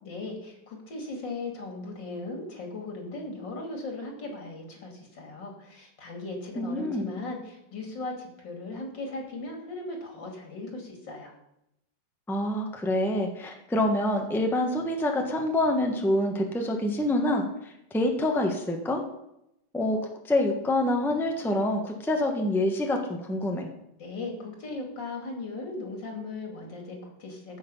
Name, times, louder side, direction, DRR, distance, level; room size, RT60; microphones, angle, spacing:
voice 1, 0.0-11.3 24.0-27.6, left 2 dB, 80° left, 2 dB, 3.2 m, -38 dB
voice 2, 6.6-7.1 12.3-19.0 19.7-20.0 20.2-23.7, left 1 dB, ahead, 3 dB, 1.0 m, -26 dB
14.5 x 6.4 x 5.5 m, 0.83 s
omnidirectional pair, 1.9 m